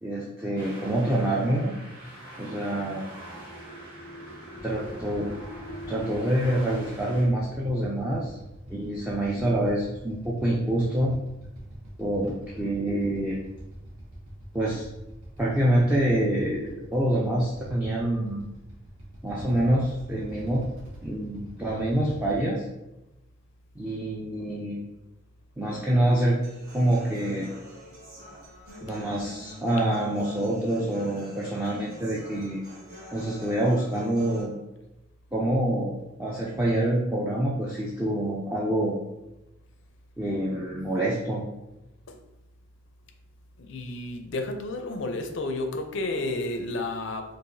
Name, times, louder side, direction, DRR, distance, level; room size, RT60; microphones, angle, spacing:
voice 1, 0.0-1.8 2.4-3.0 4.6-5.3 5.9-8.4 8.7-11.1 12.0-13.4 14.5-14.8 15.4-18.4 19.2-20.6 21.0-22.6 23.8-24.8 25.6-26.4 26.7-27.5 28.8-32.6 33.1-34.6 35.3-35.9 36.2-39.0 40.2-41.4, right 1 dB, 10° right, -5 dB, 0.4 m, -26 dB
sound 1, 0.6-7.2, equal, 25° right, 1.0 m, -42 dB
Motorcycle / Idling, 4.5-22.4, equal, 75° right, 1.1 m, -44 dB
Human voice / Acoustic guitar, 26.4-34.4, equal, 45° right, 1.5 m, -46 dB
voice 2, 43.7-47.2, left 2 dB, 60° left, 6 dB, 0.4 m, -31 dB
4.6 x 2.5 x 2.7 m, 0.96 s
head